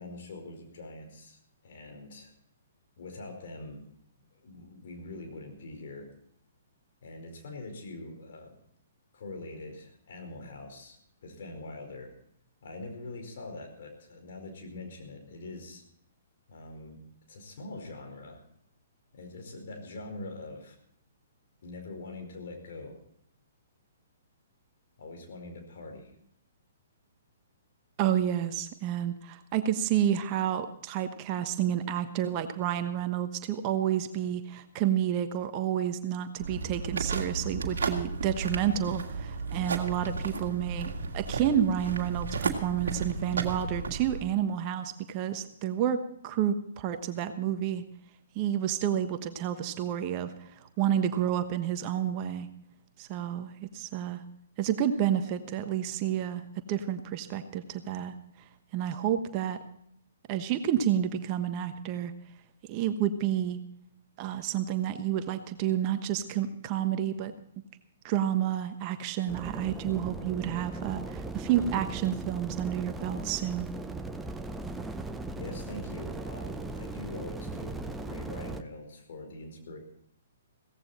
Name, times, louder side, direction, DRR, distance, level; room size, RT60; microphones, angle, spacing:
voice 1, 0.0-2.3 3.0-3.8 4.3-6.1 7.0-8.6 9.1-12.1 12.6-15.8 16.5-17.0 17.3-18.4 19.1-20.7 21.6-23.0 25.0-26.1 75.0-75.1 75.4-79.8, left 2 dB, 55° left, 3 dB, 4.8 m, -43 dB
voice 2, 28.0-47.8 48.3-52.5 53.0-54.2 54.6-56.4 56.7-58.1 58.7-59.6 60.3-62.1 62.7-63.6 64.2-67.3 68.0-73.7, right 10 dB, 35° right, 9 dB, 1.2 m, -30 dB
sound 1, 36.4-44.2, right 4 dB, 60° right, 2.1 m, -34 dB
sound 2, 69.3-78.6, right 3 dB, 10° right, 0.8 m, -38 dB
17.0 x 15.0 x 4.3 m, 0.70 s
figure-of-eight pair, 120°, 0 cm